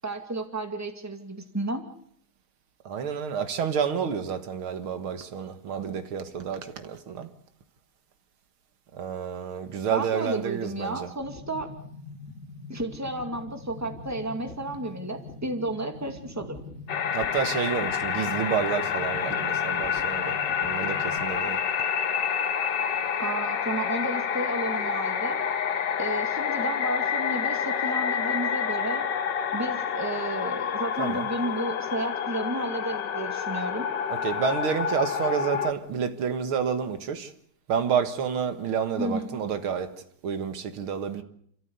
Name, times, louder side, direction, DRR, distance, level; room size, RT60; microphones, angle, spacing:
voice 1, 0.0-1.8 9.9-11.7 12.7-16.6 23.2-25.4 26.0-29.1 29.5-33.9 39.0-39.4, right 2 dB, 10° right, 2.2 m, -32 dB
voice 2, 2.9-7.3 8.9-11.1 17.1-20.3 20.6-21.6 31.0-31.3 34.1-37.3 37.7-39.9 40.2-41.2, right 7 dB, 85° right, 2.4 m, -29 dB
sound 1, 11.2-21.2, left 4 dB, 35° left, 2.9 m, -43 dB
sound 2, 16.9-35.7, left 7 dB, 60° left, 1.7 m, -28 dB
29.5 x 14.0 x 8.2 m
omnidirectional pair, 2.3 m